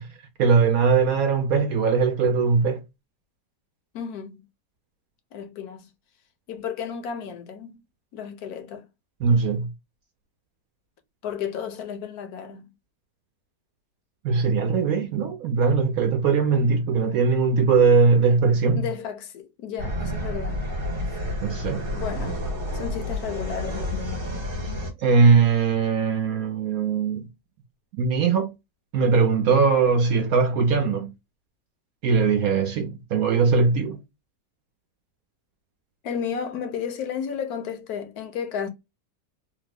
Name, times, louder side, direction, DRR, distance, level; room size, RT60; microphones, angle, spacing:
voice 1, 0.4-2.8 9.2-9.7 14.2-18.8 21.4-21.8 25.0-27.3 28.0-28.5 28.9-31.1 32.0-34.0, right 5 dB, 70° right, 0.9 m, -20 dB
voice 2, 3.9-4.4 5.3-5.9 6.5-7.8 8.1-8.9 11.2-12.7 18.7-20.7 21.9-22.4 22.7-24.3 36.0-38.7, left 7 dB, 70° left, 1.1 m, -33 dB
sound 1, 19.8-24.9, left 1 dB, 35° right, 1.2 m, -30 dB
3.2 x 2.0 x 3.3 m
omnidirectional pair, 1.8 m